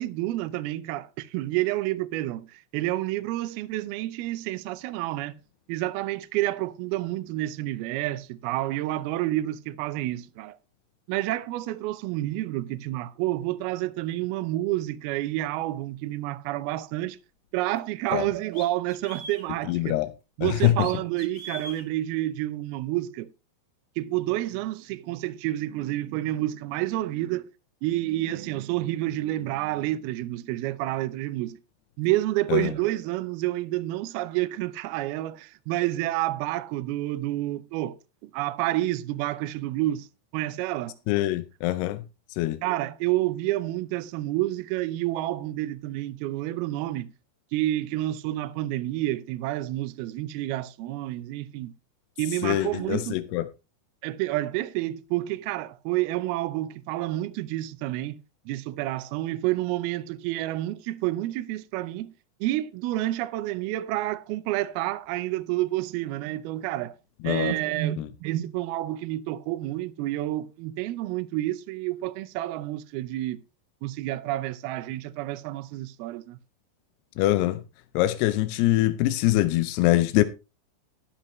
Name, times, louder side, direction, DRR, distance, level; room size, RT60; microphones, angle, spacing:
voice 1, 0.0-5.3 5.7-10.6 11.1-17.2 17.5-20.0 20.4-23.3 24.0-27.5 27.8-31.6 32.0-38.0 38.2-40.1 40.3-40.9 42.6-47.1 47.5-51.7 52.2-53.2 54.0-58.2 58.5-62.1 62.4-67.0 67.2-73.4 73.8-76.4, right 16 dB, 80° right, 2.5 m, -29 dB
sound 1, 17.8-17.9 18.5-19.5 20.6-21.8, left 1 dB, 35° left, 2.9 m, -41 dB
voice 2, 19.7-20.1 20.4-20.7 32.5-32.7 41.1-42.0 42.4-42.6 52.4-53.4 67.2-67.5 68.0-68.1 77.2-77.6 78.0-80.3, left 16 dB, 85° left, 2.7 m, -23 dB
13.0 x 11.5 x 3.1 m
omnidirectional pair, 4.6 m